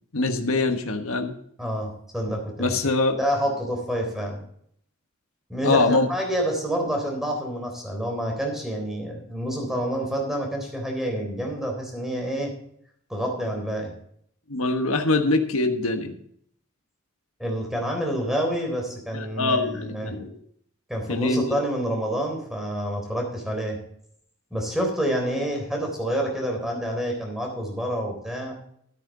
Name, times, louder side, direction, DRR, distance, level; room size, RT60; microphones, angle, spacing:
voice 1, 0.1-1.3 2.6-3.2 5.6-6.1 14.5-16.1 19.1-20.3 21.1-21.6, left 2 dB, 90° left, 5 dB, 1.3 m, -23 dB
voice 2, 1.6-2.8 3.1-4.4 5.5-12.5 13.1-13.9 17.4-20.1 20.9-23.8 24.5-28.5, equal, ahead, 2 dB, 3.7 m, -28 dB
13.5 x 9.3 x 3.8 m, 0.67 s
head